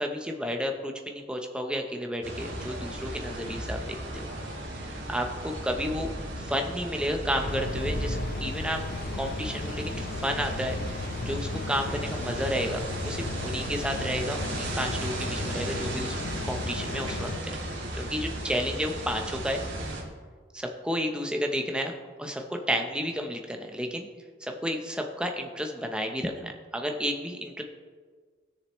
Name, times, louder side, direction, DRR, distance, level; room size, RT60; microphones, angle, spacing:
voice 1, 0.0-3.9 4.1-4.3 4.8-6.1 6.4-8.8 9.1-16.2 16.4-17.6 18.0-19.6 20.5-24.1 24.4-27.6, equal, 5° right, 3 dB, 0.8 m, -32 dB
sound 1, 2.2-20.0, right 1 dB, 80° right, 2.1 m, -35 dB
sound 2, 7.5-17.4, left 3 dB, 55° left, 0.5 m, -36 dB
17.0 x 6.7 x 3.1 m, 1.6 s
head